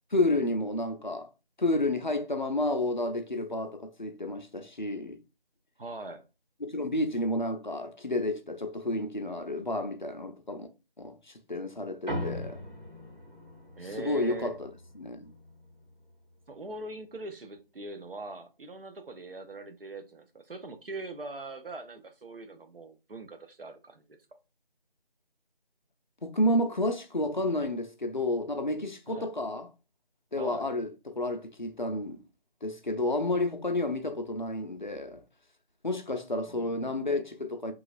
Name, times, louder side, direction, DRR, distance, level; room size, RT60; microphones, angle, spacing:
voice 1, 0.1-1.3 1.6-5.2 6.6-10.7 11.0-12.6 14.0-14.7 15.0-15.3 26.2-29.7 30.3-32.2 32.6-35.2 35.8-37.7, left 1 dB, 55° left, 0.4 m, -30 dB
voice 2, 5.8-6.2 13.8-14.5 16.5-24.2 29.1-29.3 30.4-30.7 36.5-37.2, right 2 dB, 70° right, 0.6 m, -42 dB
sound 1, 12.1-16.8, left 1 dB, 55° right, 1.4 m, -41 dB
3.0 x 2.3 x 2.4 m
figure-of-eight pair, 170°, 29 cm